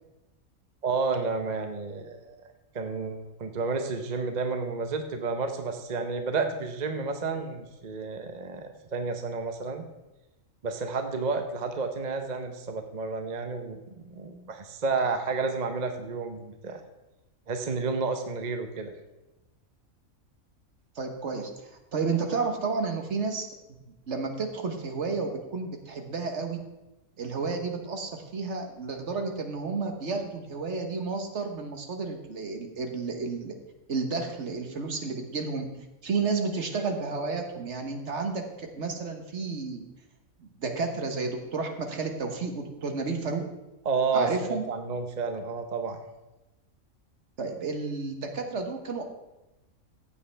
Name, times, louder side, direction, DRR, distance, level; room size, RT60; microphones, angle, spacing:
voice 1, 0.8-2.4 2.7-9.9 10.6-16.8 17.5-18.9 43.8-46.0, right 4 dB, 35° right, 6 dB, 0.9 m, -31 dB
voice 2, 20.9-23.5 24.1-26.6 27.2-33.6 33.9-35.7 36.0-39.8 40.4-43.4 44.1-44.6 47.4-49.0, right 4 dB, 60° right, 4 dB, 1.4 m, -31 dB
15.0 x 8.4 x 3.4 m, 1.0 s
omnidirectional pair, 1.4 m